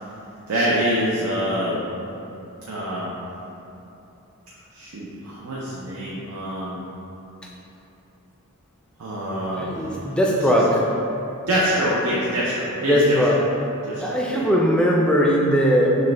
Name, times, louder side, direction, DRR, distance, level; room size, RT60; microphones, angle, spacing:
voice 1, 0.5-1.8 2.7-3.2 4.7-6.8 9.0-10.4 11.5-13.5 13.8-14.5, equal, 80° right, -6 dB, 0.6 m, -25 dB
voice 2, 9.6-10.8 12.8-13.4 14.0-16.1, equal, 5° left, -3 dB, 0.4 m, -19 dB
6.4 x 2.2 x 3.3 m, 3.0 s
head